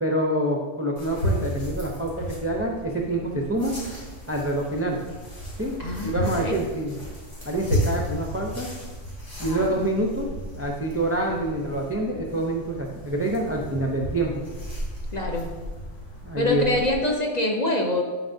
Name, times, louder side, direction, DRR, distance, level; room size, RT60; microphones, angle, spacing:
voice 1, 0.0-3.7 4.3-5.0 5.6-7.0 7.5-8.7 9.4-10.3 10.5-14.4 16.2-16.7, right 1 dB, 20° right, 0 dB, 0.4 m, -26 dB
sound 1, 1.0-17.0, equal, 75° left, 2.7 m, -34 dB
voice 2, 5.8-6.6 9.4-9.7 15.1-15.5 16.4-18.0, left 1 dB, 40° left, 0 dB, 0.8 m, -25 dB
11.0 x 4.6 x 2.7 m, 1.3 s
omnidirectional pair, 1.3 m